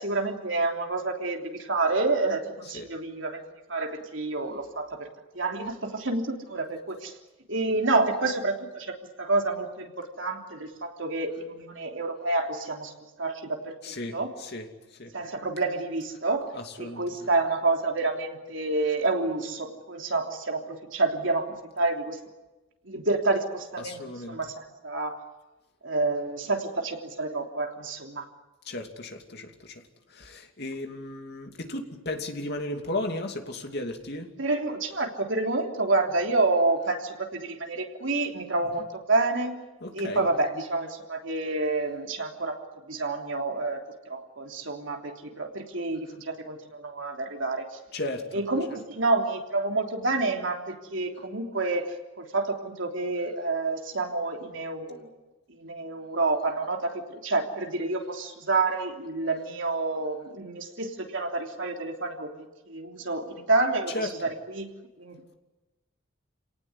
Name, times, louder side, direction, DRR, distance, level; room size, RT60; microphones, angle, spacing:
voice 1, 0.0-3.4 3.7-5.1 5.3-7.1 7.5-12.9 13.2-13.7 14.1-14.4 15.1-16.5 16.8-22.2 22.9-24.0 24.3-25.2 25.8-28.2 34.4-39.6 39.9-47.7 48.3-55.1 55.5-64.7 65.0-65.4, right 3 dB, 65° right, 2 dB, 3.3 m, -28 dB
voice 2, 13.8-15.2 16.5-17.3 23.8-24.5 28.6-29.8 30.1-34.3 38.7-38.8 39.8-40.3 47.9-48.4 63.9-64.2, left 2 dB, 50° left, 4 dB, 2.8 m, -35 dB
28.0 x 18.5 x 9.7 m, 1.1 s
head